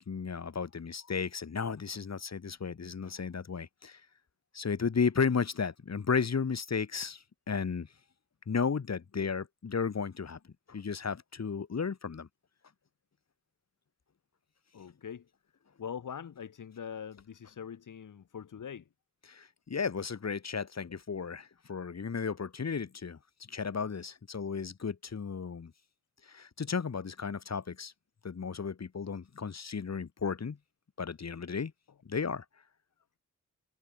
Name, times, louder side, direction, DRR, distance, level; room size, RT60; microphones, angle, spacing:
voice 1, 0.0-4.0 4.5-7.9 8.5-10.4 10.7-12.3 19.3-23.2 23.5-25.7 26.2-27.9 28.2-30.6 31.0-31.7 32.0-32.4, left 5 dB, 55° left, 6.4 m, -34 dB
voice 2, 14.7-15.3 15.8-18.8, left 7 dB, 75° left, 6.9 m, -42 dB
cardioid pair, 65°, 31 cm